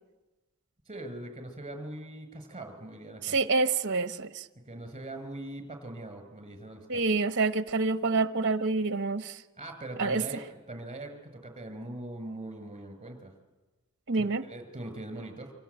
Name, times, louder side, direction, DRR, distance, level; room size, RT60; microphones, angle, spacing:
voice 1, 0.9-3.4 4.7-7.0 9.6-13.3 14.2-15.5, right 1 dB, 25° right, 7 dB, 5.6 m, -41 dB
voice 2, 3.2-4.5 6.9-9.4 10.0-10.2 14.1-14.4, right 3 dB, 55° right, 10 dB, 1.1 m, -27 dB
28.5 x 26.0 x 8.1 m, 1.1 s
head